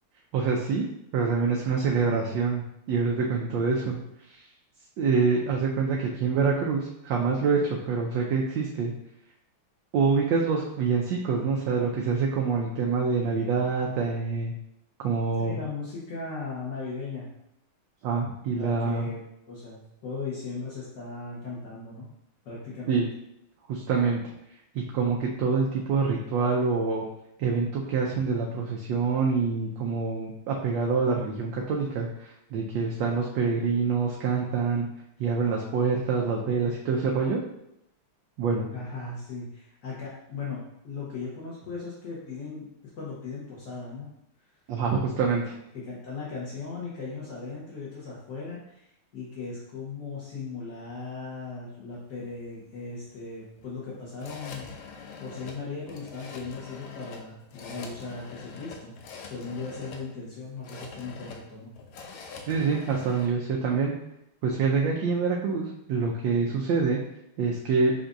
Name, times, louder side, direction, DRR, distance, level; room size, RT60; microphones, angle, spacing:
voice 1, 0.3-0.8 1.1-4.0 4.3-4.4 5.0-8.9 9.9-14.5 15.0-15.6 18.0-19.1 22.9-23.0 23.7-24.2 24.7-27.0 27.4-34.9 35.2-37.4 38.4-38.7 44.7-45.5 62.5-63.9 64.4-67.0 67.4-67.9, right 5 dB, 75° right, -2 dB, 1.1 m, -26 dB
voice 2, 15.4-17.3 18.5-19.2 19.5-22.1 22.4-23.0 38.7-42.7 43.0-44.1 45.5-48.9 49.1-54.9 55.2-58.9 59.2-61.7, left 4 dB, 55° left, -8 dB, 1.5 m, -38 dB
sound 1, 51.9-63.3, left 5 dB, 85° left, 1.5 m, -45 dB
7.0 x 2.6 x 2.6 m, 0.81 s
omnidirectional pair, 2.4 m